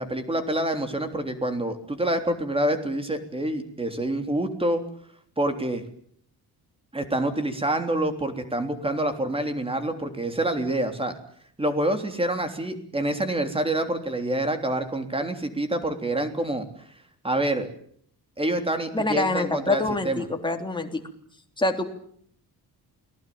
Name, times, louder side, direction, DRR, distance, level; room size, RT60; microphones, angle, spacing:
voice 1, 0.0-4.8 5.4-5.8 6.9-11.1 11.6-16.7 17.2-17.7 18.4-20.3, right 1 dB, 15° right, 7 dB, 3.4 m, -27 dB
voice 2, 18.9-21.0 21.6-21.9, left 2 dB, 10° left, 3 dB, 3.4 m, -25 dB
29.0 x 20.0 x 8.8 m, 0.64 s
wide cardioid pair, 160°, 40 cm